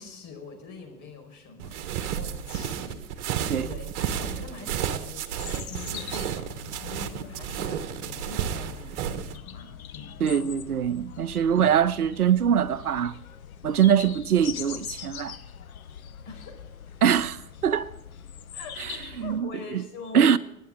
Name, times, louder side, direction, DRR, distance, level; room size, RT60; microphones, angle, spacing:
voice 1, 0.0-3.2 3.6-6.5 6.8-10.1 11.5-11.6 16.2-16.9 18.5-18.9 19.2-20.4, left 4 dB, 45° left, 4.9 m, -43 dB
sound 1, 1.6-9.3, right 9 dB, 50° right, 1.4 m, -32 dB
sound 2, 5.3-19.4, left 9 dB, 70° left, 1.1 m, -42 dB
voice 2, 10.2-13.1 13.6-15.4 17.0-17.9 18.8-19.8 20.1-20.4, right 8 dB, 80° right, 0.8 m, -23 dB
25.0 x 10.5 x 3.7 m
figure-of-eight pair, 90°, 44 cm